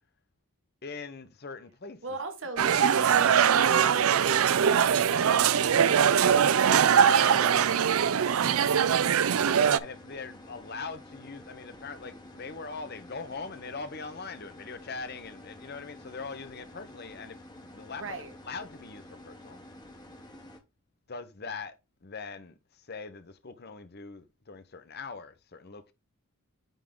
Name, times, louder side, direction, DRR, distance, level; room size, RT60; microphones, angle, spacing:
voice 1, 0.8-2.0 2.6-2.7 7.5-7.7 8.9-9.4 9.8-19.6 21.1-25.9, left 4 dB, 50° left, 0.8 m, -42 dB
voice 2, 2.0-6.9 7.2-9.2 18.0-18.3, right 3 dB, 60° right, 1.3 m, -40 dB
sound 1, 2.6-9.8, right 8 dB, 75° right, 0.5 m, -22 dB
sound 2, 3.5-20.6, left 1 dB, 20° left, 1.0 m, -49 dB
9.1 x 3.6 x 3.7 m
head